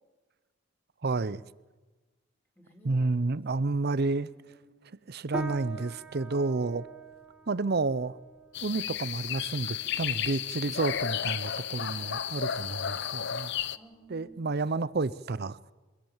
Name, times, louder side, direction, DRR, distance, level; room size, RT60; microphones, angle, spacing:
voice 1, 1.0-1.4 2.8-4.3 5.1-6.9 7.5-8.2 8.6-13.5 14.1-15.7, right 3 dB, 50° right, 0.6 m, -30 dB
voice 2, 2.6-3.4 4.3-4.8 13.8-14.6, right 2 dB, 10° left, 3.7 m, -55 dB
sound 1, 5.3-15.0, right 2 dB, 5° right, 1.4 m, -46 dB
sound 2, 8.5-13.8, left 9 dB, 55° left, 0.6 m, -33 dB
25.0 x 16.0 x 7.2 m
head